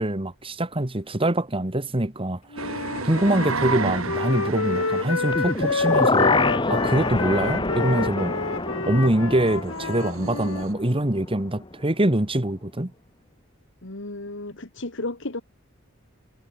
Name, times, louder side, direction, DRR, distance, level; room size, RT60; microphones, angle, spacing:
voice 1, 0.0-6.3 6.7-8.3 8.9-12.9, right 1 dB, 25° right, 1.8 m, -24 dB
Wind instrument woodwind instrument, 2.5-10.7, left 4 dB, 80° left, 2.0 m, -29 dB
sound 1, 2.6-10.7, right 3 dB, 90° right, 5.4 m, -33 dB
sound 2, 5.3-11.3 11.6-11.7, left 3 dB, 25° left, 1.3 m, -26 dB
voice 2, 13.8-15.4, left 2 dB, 60° left, 2.3 m, -34 dB
head